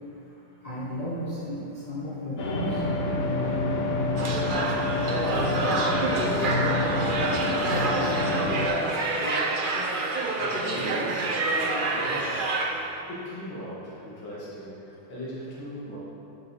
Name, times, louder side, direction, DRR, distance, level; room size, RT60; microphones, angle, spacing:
voice 1, 0.6-2.8, equal, 20° left, -9 dB, 1.3 m, -33 dB
sound 1, 2.4-8.7, left 2 dB, 45° left, 0.8 m, -27 dB
sound 2, 4.2-12.9, right 3 dB, 80° right, 0.4 m, -28 dB
voice 2, 4.3-4.8 5.3-6.9 7.6-9.2 10.4-12.4 13.1-16.0, equal, 80° left, -7 dB, 2.8 m, -39 dB
12.0 x 6.9 x 4.6 m, 2.9 s
omnidirectional pair, 2.2 m